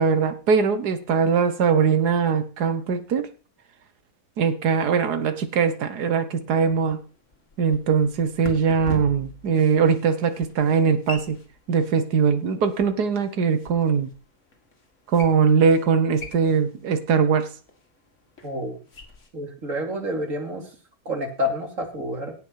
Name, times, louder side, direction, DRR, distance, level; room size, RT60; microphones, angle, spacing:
voice 1, 0.0-3.3 4.4-7.0 7.6-11.4 11.7-14.1 15.1-17.5, right 6 dB, 90° right, 10 dB, 1.8 m, -21 dB
sound 1, 6.6-19.3, left 1 dB, 50° left, 2.5 m, -43 dB
voice 2, 18.4-18.8 19.3-20.7 21.0-22.3, left 1 dB, 55° right, 3 dB, 3.1 m, -28 dB
17.0 x 6.2 x 5.7 m, 0.37 s
omnidirectional pair, 1.7 m